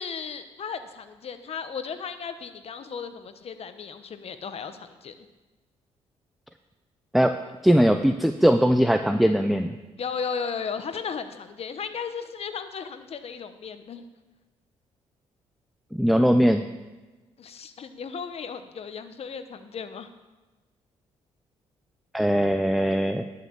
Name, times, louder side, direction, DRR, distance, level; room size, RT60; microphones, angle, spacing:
voice 1, 0.0-5.3 10.0-14.0 17.4-20.1, left 6 dB, 55° left, 10 dB, 1.1 m, -35 dB
voice 2, 7.6-9.8 15.9-16.6 22.1-23.2, equal, ahead, 7 dB, 0.6 m, -20 dB
11.0 x 5.9 x 7.3 m, 1.2 s
supercardioid pair, 60°, 12 cm